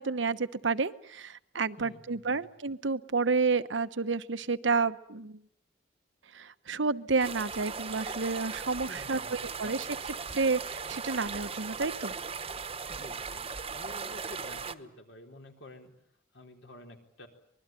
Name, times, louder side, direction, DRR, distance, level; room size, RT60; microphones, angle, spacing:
voice 1, 0.0-5.4 6.3-12.1, right 4 dB, 85° right, 12 dB, 1.0 m, -30 dB
voice 2, 1.8-2.5 8.9-9.8 12.9-13.4 13.7-15.9 16.3-17.3, left 1 dB, 75° left, 4 dB, 4.2 m, -50 dB
sound 1, 7.2-14.7, right 5 dB, 30° right, 1.1 m, -38 dB
25.0 x 21.0 x 9.1 m, 0.69 s
head